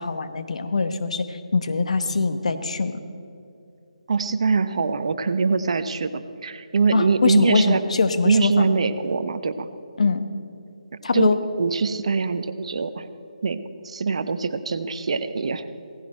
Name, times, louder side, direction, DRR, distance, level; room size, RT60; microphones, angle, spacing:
voice 1, 0.0-3.0 6.9-8.7 10.0-10.3 11.0-11.4, left 4 dB, 60° left, 9 dB, 1.1 m, -22 dB
voice 2, 4.1-7.8 8.2-9.7 11.1-13.1 13.4-15.6, right 4 dB, 55° right, 11 dB, 0.9 m, -23 dB
18.0 x 15.0 x 4.4 m, 2.7 s
figure-of-eight pair, 150°, 4 cm